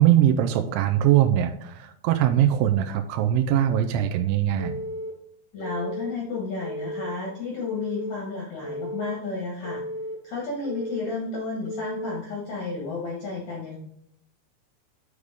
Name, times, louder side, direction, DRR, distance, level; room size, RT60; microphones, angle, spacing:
voice 1, 0.0-4.8, right 11 dB, 90° right, 6 dB, 3.0 m, -21 dB
Telephone, 4.6-5.1 5.6-6.1 6.6-7.1 7.6-8.1 8.6-9.1 9.6-10.1 10.6-11.1 11.6-12.2, equal, 45° left, 1.6 m, -34 dB
voice 2, 5.5-9.8 10.2-13.8, left 3 dB, 70° left, -2 dB, 1.6 m, -32 dB
8.1 x 5.0 x 3.5 m, 0.74 s
omnidirectional pair, 5.3 m